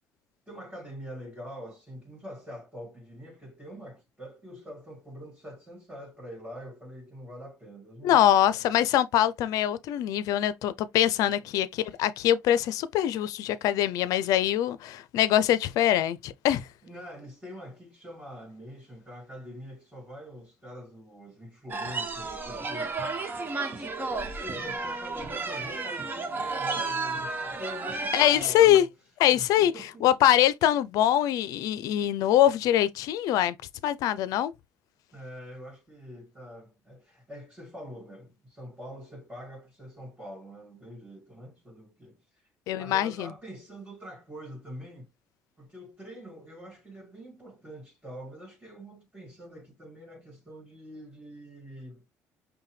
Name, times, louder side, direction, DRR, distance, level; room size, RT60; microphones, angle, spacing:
voice 1, 0.5-8.7 11.3-11.5 16.8-28.9 29.3-30.1 35.1-42.5 42.8-45.1 45.6-52.0, equal, 10° right, 2.1 m, -45 dB
voice 2, 8.0-16.7 28.1-28.9 29.2-29.7 30.0-33.6 33.8-34.5 42.7-43.3, left 12 dB, 80° left, 0.4 m, -23 dB
sound 1, 21.7-28.8, right 3 dB, 35° right, 1.1 m, -33 dB
5.4 x 2.2 x 3.2 m
supercardioid pair, 80°, 6 cm